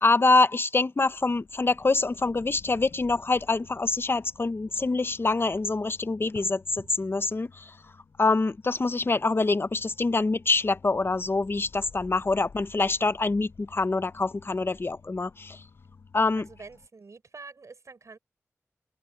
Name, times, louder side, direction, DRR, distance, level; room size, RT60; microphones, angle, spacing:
voice 1, 0.0-7.6 8.2-15.6 16.1-16.5, left 3 dB, 45° left, 0.7 m, -25 dB
sound 1, 1.1-16.9, left 5 dB, 85° left, 6.6 m, -53 dB
voice 2, 16.4-18.2, right 4 dB, 70° right, 6.2 m, -47 dB
open air
cardioid pair, 45°, 5 cm